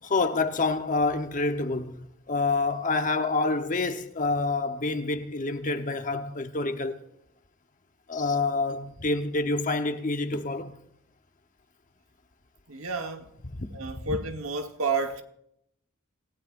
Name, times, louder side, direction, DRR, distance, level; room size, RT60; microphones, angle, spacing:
voice 1, 0.0-2.0 2.3-7.0 8.1-10.8 13.5-13.7 14.1-14.2, left 3 dB, 40° left, 1.0 m, -27 dB
voice 2, 12.7-13.3 13.7-15.2, right 4 dB, 90° right, 1.3 m, -30 dB
27.5 x 15.5 x 2.5 m
head